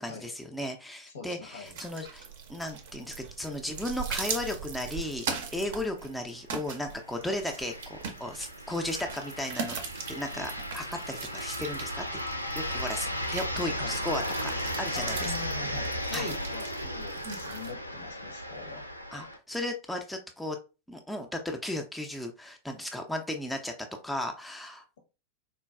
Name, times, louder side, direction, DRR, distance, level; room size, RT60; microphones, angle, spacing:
voice 1, 0.0-9.8 10.1-12.2 12.6-15.3 16.1-16.3 19.1-20.6 20.9-23.7 24.0-24.8, left 1 dB, 5° left, 3 dB, 0.4 m, -35 dB
voice 2, 1.1-1.8 13.8-14.0 14.9-18.8, left 4 dB, 65° left, 3 dB, 0.8 m, -42 dB
sound 1, 1.7-17.7, right 6 dB, 55° right, 0.5 m, -40 dB
sound 2, 6.6-19.4, equal, 90° left, 0.3 m, -35 dB
3.7 x 2.2 x 2.2 m, 0.30 s
figure-of-eight pair, 90°, 0 cm